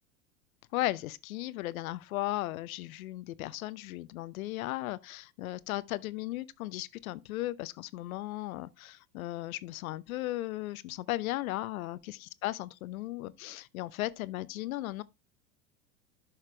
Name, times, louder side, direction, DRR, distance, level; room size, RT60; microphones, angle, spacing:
voice 1, 0.7-15.0, left 17 dB, 70° left, 0.8 m, -36 dB
11.0 x 5.8 x 3.1 m
hypercardioid pair, 90°, 44 cm